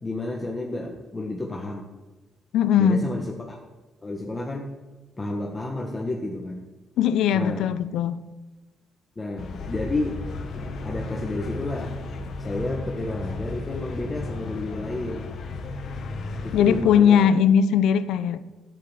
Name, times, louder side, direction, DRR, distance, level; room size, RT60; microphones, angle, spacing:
voice 1, 0.0-1.9 2.8-3.6 4.0-4.7 5.2-6.7 7.3-7.7 9.1-10.2 10.6-12.0 12.4-15.3 16.4-17.4, left 2 dB, 20° left, 1.6 m, -31 dB
voice 2, 2.5-3.1 7.0-8.2 16.5-18.6, left 8 dB, 85° left, 0.7 m, -20 dB
sound 1, 9.4-16.8, left 2 dB, 60° left, 1.6 m, -34 dB
10.0 x 8.9 x 8.0 m
cardioid pair, 90°, 0 cm